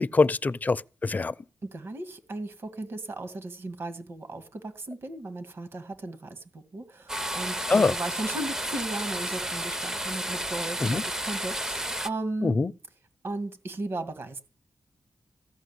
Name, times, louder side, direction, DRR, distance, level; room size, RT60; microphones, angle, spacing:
voice 1, 0.0-1.3 7.7-7.9 10.8-11.0 12.4-12.7, left 3 dB, 35° left, 0.6 m, -24 dB
voice 2, 1.6-12.6 13.2-14.4, right 2 dB, 60° right, 2.0 m, -36 dB
sound 1, 7.1-12.1, right 1 dB, 15° right, 0.6 m, -32 dB
15.5 x 5.7 x 9.8 m
cardioid pair, 80°, 5 cm